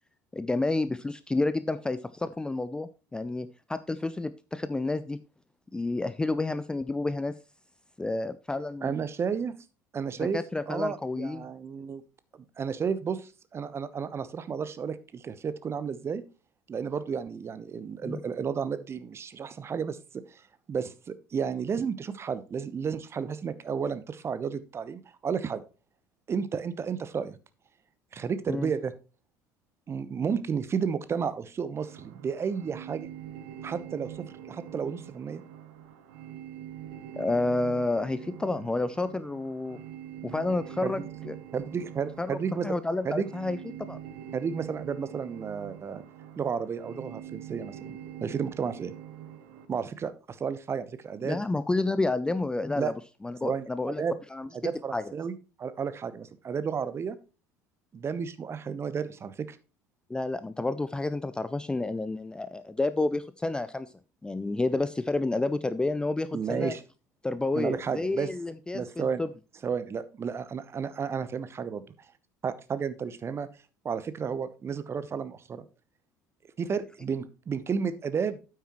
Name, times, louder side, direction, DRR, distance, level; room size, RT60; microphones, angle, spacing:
voice 1, 0.3-5.2 5.7-7.3 8.0-9.0 10.3-11.5 18.0-18.2 28.5-28.7 37.2-39.8 40.2-41.3 42.2-42.3 42.6-44.0 51.2-52.9 53.2-54.0 54.3-54.5 54.9-55.0 60.1-63.9 64.2-66.7 67.2-69.3, left 2 dB, 10° left, 14 dB, 0.4 m, -30 dB
voice 2, 8.8-9.6 9.9-10.4 10.7-12.0 12.6-16.2 16.7-20.4 20.7-25.6 26.3-27.4 28.1-28.9 29.9-33.1 33.6-35.4 40.8-41.1 41.5-42.7 43.0-43.3 44.3-46.0 46.4-48.9 49.7-51.4 52.8-52.9 53.4-53.7 54.0-54.1 54.6-57.2 57.9-59.6 66.3-66.8 67.5-68.3 68.7-69.2 69.6-71.8 72.4-73.5 73.8-75.6 76.6-78.4, right 6 dB, 30° right, 14 dB, 0.9 m, -32 dB
sound 1, 31.8-49.7, right 10 dB, 60° right, 1.2 m, -44 dB
9.2 x 8.5 x 3.0 m, 0.32 s
figure-of-eight pair, 65°, 9 cm